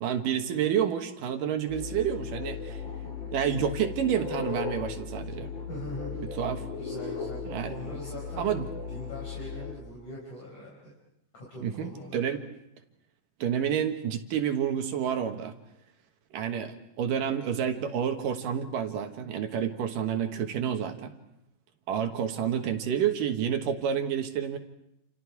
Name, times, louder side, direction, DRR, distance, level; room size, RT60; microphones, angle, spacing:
voice 1, 0.0-2.8 3.3-5.5 6.2-6.6 7.4-7.7 8.4-8.7 11.6-12.4 13.4-15.5 16.3-21.1 21.9-24.6, right 8 dB, 65° right, 6 dB, 2.9 m, -29 dB
sound 1, 1.7-9.7, left 6 dB, 35° left, 3.0 m, -37 dB
voice 2, 5.7-6.1 6.8-8.5 8.9-11.0 11.3-12.3, equal, 50° left, -4 dB, 6.0 m, -42 dB
29.0 x 29.0 x 4.8 m, 0.81 s
omnidirectional pair, 4.3 m